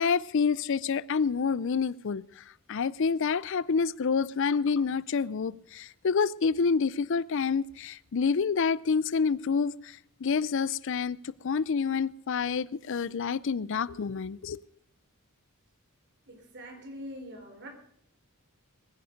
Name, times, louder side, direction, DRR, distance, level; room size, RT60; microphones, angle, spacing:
voice 1, 0.0-14.6, left 5 dB, 60° left, 0.5 m, -28 dB
voice 2, 16.3-17.7, equal, 50° right, 4.0 m, -43 dB
21.5 x 10.0 x 5.2 m
head